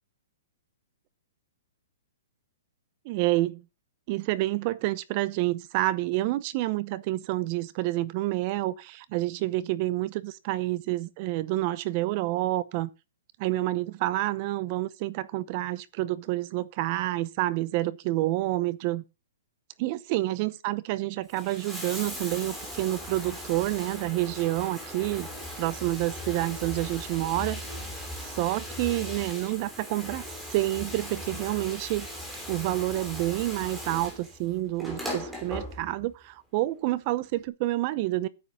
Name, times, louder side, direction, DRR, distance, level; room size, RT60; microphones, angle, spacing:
voice 1, 3.0-3.6 4.1-12.9 13.4-19.0 19.8-25.3 25.6-32.1 32.5-38.3, right 17 dB, 35° right, 0.7 m, -28 dB
Bathtub (filling or washing), 21.2-36.1 37.3-37.4, equal, 5° right, 3.1 m, -38 dB
9.6 x 7.9 x 6.0 m
hypercardioid pair, 160°, 0 cm